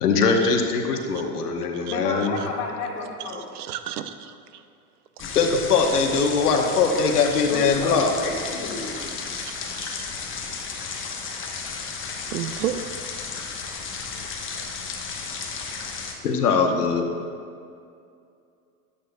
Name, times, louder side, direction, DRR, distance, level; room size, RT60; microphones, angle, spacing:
voice 1, 0.0-2.4 5.3-8.1 16.2-17.1, left 5 dB, 90° left, 3 dB, 1.1 m, -21 dB
voice 2, 1.9-3.4 7.5-9.2 11.7-11.8, left 3 dB, 50° left, -2 dB, 1.8 m, -31 dB
voice 3, 3.4-4.6 9.8-10.1 12.3-12.8 13.7-13.8, right 11 dB, 85° right, 10 dB, 0.7 m, -32 dB
sound 1, 5.2-16.1, left 5 dB, 25° left, 1.0 m, -33 dB
12.0 x 8.6 x 2.3 m, 2.4 s
hypercardioid pair, 100°, 45 cm